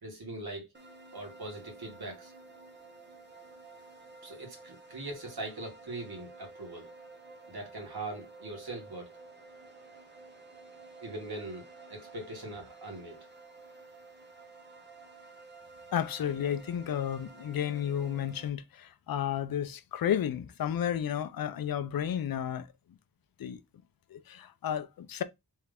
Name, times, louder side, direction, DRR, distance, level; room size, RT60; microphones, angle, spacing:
voice 1, 0.0-0.7 1.1-2.3 4.2-6.9 7.5-9.1 11.0-13.2, right 2 dB, 60° right, 2.1 m, -41 dB
sound 1, 0.7-18.5, right 3 dB, 25° right, 1.0 m, -52 dB
voice 2, 15.9-22.7 23.4-23.6 24.1-25.2, left 9 dB, 55° left, 0.5 m, -32 dB
3.6 x 3.2 x 3.4 m
wide cardioid pair, 120°, 41 cm